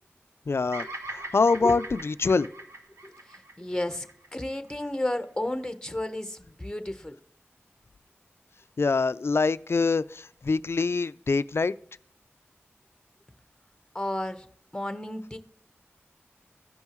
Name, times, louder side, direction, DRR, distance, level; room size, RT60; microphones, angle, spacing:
voice 1, 0.5-0.9 1.1-2.5 8.8-11.7, left 4 dB, 65° left, 0.4 m, -24 dB
Bird vocalization bird call bird song, 0.7-5.0, right 2 dB, 85° right, 1.1 m, -41 dB
voice 2, 3.0-4.1 4.3-7.2 13.9-14.5 14.7-15.4, left 1 dB, 15° left, 1.1 m, -32 dB
16.0 x 5.4 x 3.1 m
wide cardioid pair, 50°, 5 cm